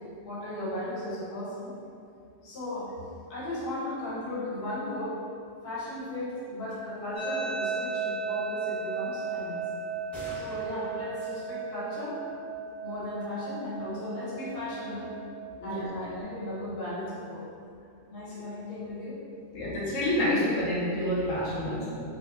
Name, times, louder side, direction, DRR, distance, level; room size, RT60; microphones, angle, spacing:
voice 1, 0.2-1.7 2.4-5.1 5.6-9.6 10.3-12.2 12.8-15.1 15.6-17.4 18.1-19.2, left 1 dB, 55° left, -8 dB, 0.8 m, -36 dB
sound 1, 6.3-6.4 6.7-6.8 7.1-7.5 10.1-11.0, right 1 dB, ahead, 0.5 m, -45 dB
sound 2, 7.2-16.2, right 4 dB, 40° right, 0.6 m, -35 dB
voice 2, 19.5-22.0, left 1 dB, 80° left, -7 dB, 1.0 m, -28 dB
2.7 x 2.3 x 2.3 m, 2.5 s
omnidirectional pair, 1.3 m